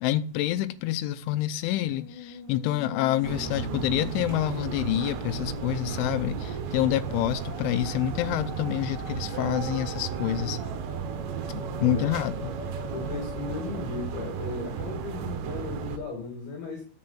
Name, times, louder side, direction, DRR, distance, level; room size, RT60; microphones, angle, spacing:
voice 1, 0.0-10.6 11.5-12.5, left 12 dB, 85° left, 3.1 m, -27 dB
Musical instrument, 1.6-15.0, left 3 dB, 25° left, 3.6 m, -43 dB
sound 1, 3.2-16.0, right 7 dB, 75° right, 2.8 m, -34 dB
voice 2, 11.6-12.1 12.9-16.8, left 4 dB, 60° left, 4.2 m, -36 dB
11.0 x 7.0 x 5.7 m
omnidirectional pair, 5.5 m